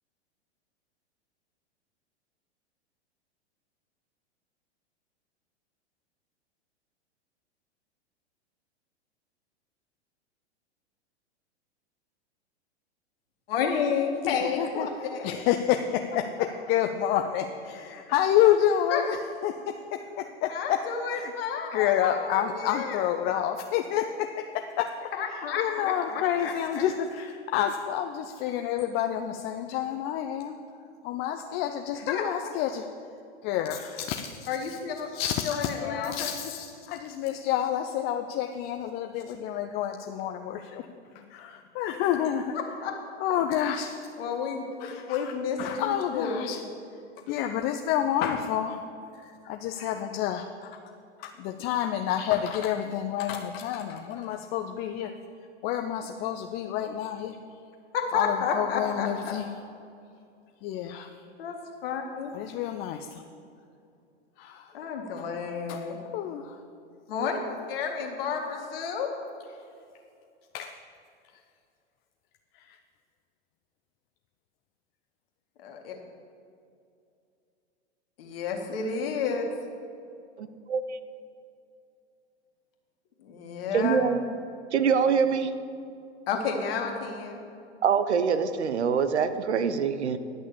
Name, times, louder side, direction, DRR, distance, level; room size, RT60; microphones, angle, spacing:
voice 1, 13.5-15.3 18.9-19.0 20.4-23.0 25.2-26.8 32.1-32.2 34.5-35.1 35.4-36.3 42.8-42.9 44.2-46.5 57.9-59.3 61.4-62.3 64.7-66.0 67.1-67.4 67.7-69.1 75.6-75.9 78.2-79.4 83.2-84.0 86.3-87.4, left 6 dB, 55° left, 2 dB, 1.9 m, -31 dB
voice 2, 14.2-14.9 15.2-19.2 19.4-20.8 21.1-21.3 21.7-24.9 25.3-30.5 31.0-32.9 33.4-34.5 35.1-40.9 41.3-42.6 43.2-44.0 44.8-45.3 45.6-46.6 47.3-48.8 49.1-50.7 51.2-55.1 55.6-57.4 58.1-59.5 60.6-61.1 62.3-63.2 64.4-64.7 65.7-65.8 66.1-66.6 70.5-70.7 72.6-72.7, left 10 dB, 30° left, 5 dB, 0.5 m, -29 dB
voice 3, 83.7-84.2 84.7-85.5 87.8-90.2, right 6 dB, 75° right, 11 dB, 0.8 m, -24 dB
11.0 x 6.3 x 7.0 m, 2.5 s
figure-of-eight pair, 100°, 34 cm